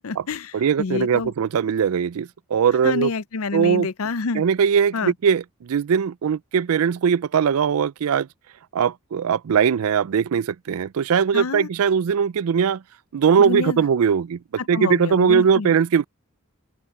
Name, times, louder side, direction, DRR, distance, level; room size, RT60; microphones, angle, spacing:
voice 1, 0.0-1.3 2.8-4.4 4.9-5.1 11.3-11.7 13.4-13.8 14.6-15.7, left 4 dB, 80° left, 0.6 m, -28 dB
voice 2, 0.5-3.1 3.5-3.9 4.3-8.3 8.7-12.8 13.1-14.4 14.7-16.1, right 7 dB, 85° right, 0.4 m, -20 dB
open air
head